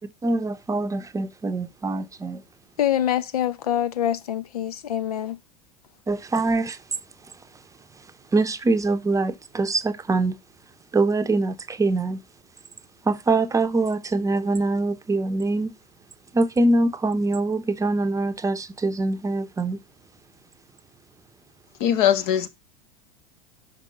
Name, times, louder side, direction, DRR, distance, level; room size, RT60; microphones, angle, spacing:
voice 1, 0.2-2.4 6.1-6.8 8.3-10.4 10.9-12.2 13.0-15.7 16.3-19.8, right 2 dB, 15° right, 0.7 m, -23 dB
voice 2, 2.8-5.4, left 11 dB, 75° left, 0.6 m, -25 dB
voice 3, 21.8-22.5, left 10 dB, 55° left, 1.2 m, -20 dB
6.0 x 5.2 x 5.3 m
hypercardioid pair, 80°, 19 cm